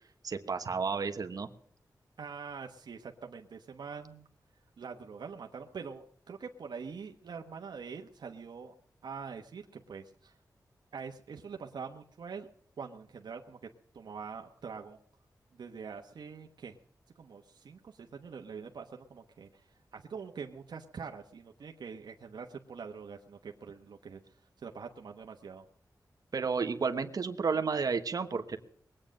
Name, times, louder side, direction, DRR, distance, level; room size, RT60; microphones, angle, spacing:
voice 1, 0.2-1.5 26.3-28.6, right 5 dB, 60° right, 7 dB, 1.2 m, -31 dB
voice 2, 2.2-4.3 4.8-8.7 9.0-10.3 10.9-12.5 12.8-13.6 13.9-15.0 15.5-16.8 17.2-25.6, right 5 dB, 85° right, 3 dB, 1.1 m, -44 dB
21.5 x 8.9 x 6.4 m, 0.62 s
wide cardioid pair, 135°, 7 cm